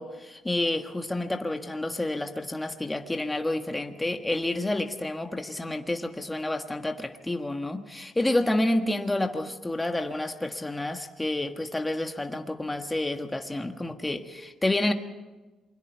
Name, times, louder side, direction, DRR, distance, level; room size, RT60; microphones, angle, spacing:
voice 1, 0.0-14.9, left 1 dB, 15° left, 5 dB, 1.6 m, -29 dB
28.0 x 22.5 x 4.7 m, 1.2 s
cardioid pair, 90°, 0 cm